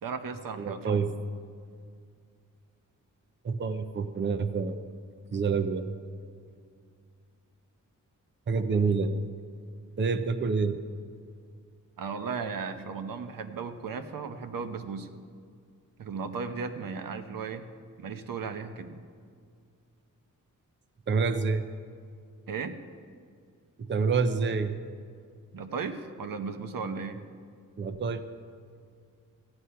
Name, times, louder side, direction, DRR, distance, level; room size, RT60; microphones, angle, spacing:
voice 1, 0.0-1.1 12.0-15.1 16.0-17.7 18.0-19.0 22.5-22.8 25.5-27.2, right 5 dB, 85° right, 8 dB, 0.9 m, -36 dB
voice 2, 0.6-1.1 3.4-4.8 5.3-5.9 8.5-9.3 10.0-10.8 21.1-21.6 23.8-24.8 27.8-28.3, right 4 dB, 35° right, 10 dB, 0.5 m, -27 dB
14.5 x 9.8 x 5.6 m, 2.2 s
wide cardioid pair, 165°, 33 cm